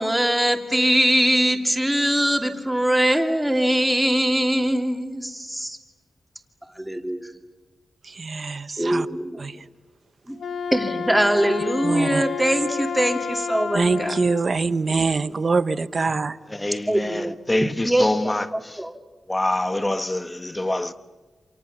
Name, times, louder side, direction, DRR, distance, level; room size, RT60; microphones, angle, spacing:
voice 1, 0.0-5.8 6.8-7.3 8.8-9.4 10.3-10.4 10.7-14.1 16.9-18.9, right 1 dB, 5° right, 2.7 m, -22 dB
voice 2, 8.0-9.1 9.4-9.6 11.8-12.2 13.7-16.4, right 4 dB, 45° right, 1.0 m, -24 dB
Wind instrument woodwind instrument, 10.3-14.5, left 6 dB, 70° left, 1.0 m, -30 dB
voice 3, 16.6-18.8 19.3-20.9, left 1 dB, 15° left, 1.3 m, -25 dB
28.5 x 27.5 x 7.2 m
wide cardioid pair, 115°, 0 cm